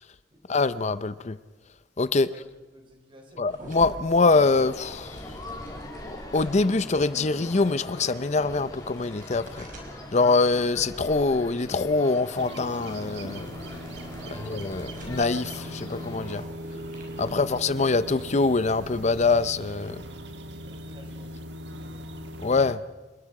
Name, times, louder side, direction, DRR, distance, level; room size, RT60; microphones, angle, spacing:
voice 1, 0.5-1.4 2.0-2.3 3.4-5.2 6.0-9.7 10.1-13.5 14.4-16.4 17.2-20.0 22.4-22.8, left 3 dB, 40° left, 14 dB, 0.7 m, -24 dB
voice 2, 2.1-3.7 14.1-14.5 20.6-22.1, equal, 30° right, 3 dB, 4.2 m, -52 dB
sound 1, 3.5-19.3, right 1 dB, 50° right, 5.2 m, -48 dB
sound 2, 4.2-16.4, left 1 dB, 20° left, 3.2 m, -42 dB
sound 3, 12.3-22.7, equal, 70° right, 1.5 m, -39 dB
27.0 x 21.5 x 4.9 m, 1.2 s
head